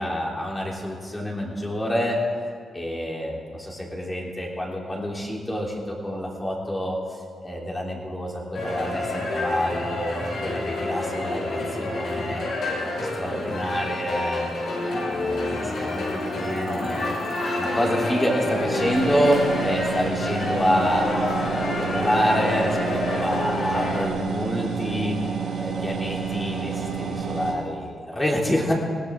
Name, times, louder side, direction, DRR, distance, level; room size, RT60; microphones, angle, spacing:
voice 1, 0.0-2.2 2.7-12.9 13.2-14.5 15.0-17.1 17.6-25.2 25.6-28.7, equal, 20° left, -2 dB, 3.5 m, -27 dB
sound 1, 8.5-24.1, left 2 dB, 70° left, 5.4 m, -28 dB
sound 2, 18.4-27.5, right 6 dB, 75° right, 5.4 m, -30 dB
20.5 x 16.5 x 3.8 m, 2.1 s
cardioid pair, 90°, 0 cm